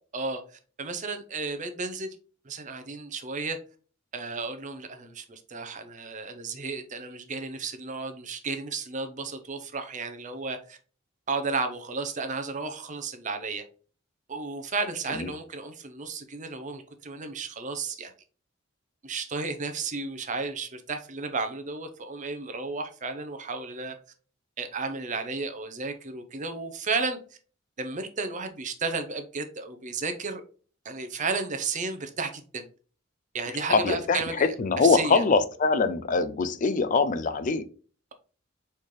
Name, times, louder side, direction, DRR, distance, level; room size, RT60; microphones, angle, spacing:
voice 1, 0.8-2.2 2.4-3.6 4.1-10.8 11.3-13.6 14.3-18.1 19.0-24.0 24.6-27.2 27.8-30.4 30.8-32.7 33.3-34.5 34.8-35.2, right 4 dB, 40° right, 7 dB, 0.7 m, -33 dB
voice 2, 33.7-37.6, left 4 dB, 40° left, 13 dB, 0.4 m, -23 dB
4.2 x 3.2 x 3.6 m, 0.39 s
head